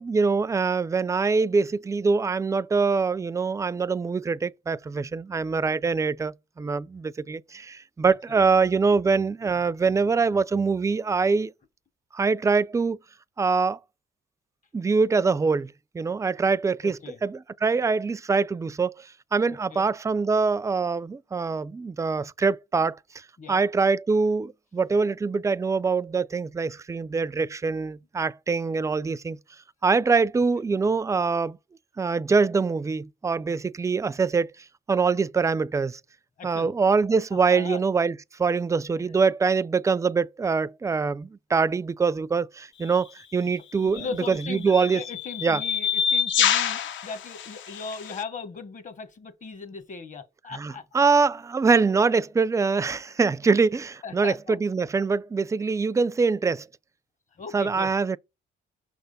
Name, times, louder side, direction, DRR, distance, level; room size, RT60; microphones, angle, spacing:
voice 1, 0.0-11.5 12.1-13.0 13.4-13.8 14.7-23.0 23.5-29.4 29.8-31.6 32.0-34.5 34.9-36.0 36.4-45.0 45.4-45.6 50.5-56.7 57.5-58.2, right 4 dB, 15° right, 0.3 m, -24 dB
voice 2, 16.8-17.2 19.5-19.8 23.4-23.6 36.4-36.7 37.5-37.8 43.8-51.1 54.0-54.6 57.4-57.9, left 5 dB, 40° left, 1.1 m, -38 dB
sound 1, 42.8-43.0 44.0-48.2, left 8 dB, 75° left, 0.8 m, -27 dB
6.2 x 3.4 x 5.3 m
cardioid pair, 90°, 20 cm